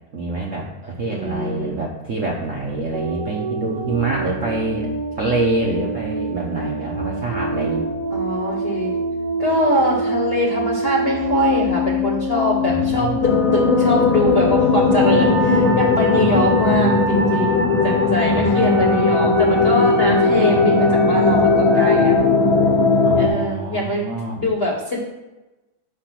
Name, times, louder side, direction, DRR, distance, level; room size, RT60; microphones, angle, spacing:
voice 1, 0.1-4.9 5.2-7.8 12.6-13.3 15.1-15.4 15.9-16.3 16.7-17.4 18.3-19.2 20.5-21.1 23.0-24.5, right 3 dB, 55° right, -2 dB, 0.9 m, -26 dB
voice 2, 1.0-1.8 8.1-8.9 9.4-22.1 23.1-24.0 24.4-25.0, left 1 dB, 45° left, -2 dB, 0.9 m, -23 dB
sound 1, 2.9-22.2, equal, 30° right, 1.1 m, -26 dB
sound 2, 13.2-23.3, left 3 dB, 85° left, 1.6 m, -17 dB
5.2 x 4.9 x 5.9 m, 1.1 s
omnidirectional pair, 2.2 m